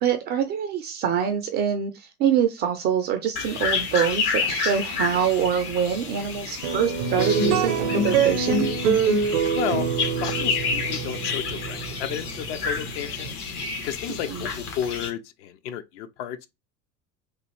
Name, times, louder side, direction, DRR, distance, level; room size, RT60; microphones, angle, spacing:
voice 1, 0.0-8.7 14.3-14.5, right 8 dB, 25° right, 0.4 m, -25 dB
sound 1, 3.4-15.1, left 5 dB, 70° left, 1.1 m, -30 dB
sound 2, 6.6-13.3, right 5 dB, 65° right, 0.7 m, -24 dB
voice 2, 9.5-9.9 10.2-13.4 13.8-16.5, left 10 dB, 50° left, 0.6 m, -32 dB
3.3 x 2.4 x 3.0 m
figure-of-eight pair, 70°, 47 cm